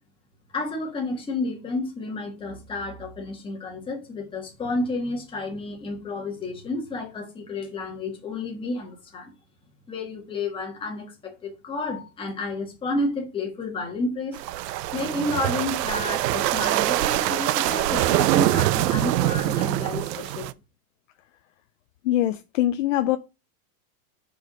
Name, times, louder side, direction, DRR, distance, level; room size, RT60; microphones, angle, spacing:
voice 1, 0.5-9.3 9.9-14.4 14.9-20.5, left 2 dB, 10° left, 1.4 m, -31 dB
sound 1, 14.3-20.5, right 15 dB, 80° right, 0.7 m, -24 dB
voice 2, 22.0-23.2, left 13 dB, 55° left, 0.5 m, -23 dB
5.0 x 4.7 x 6.0 m
supercardioid pair, 170°, 48 cm